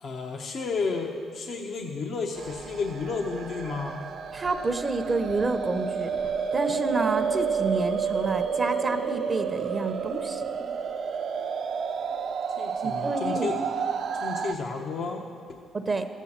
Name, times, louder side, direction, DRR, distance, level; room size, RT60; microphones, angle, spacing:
voice 1, 0.0-4.0 12.6-13.6 14.1-15.6, left 4 dB, 60° left, 2 dB, 0.9 m, -32 dB
sound 1, 2.4-14.5, right 6 dB, 65° right, 0.7 m, -30 dB
voice 2, 4.3-6.1 6.5-10.4 12.8-13.5 15.7-16.1, right 3 dB, 30° right, 8 dB, 0.7 m, -29 dB
14.0 x 8.3 x 7.3 m, 2.4 s
cardioid pair, 90°, 0 cm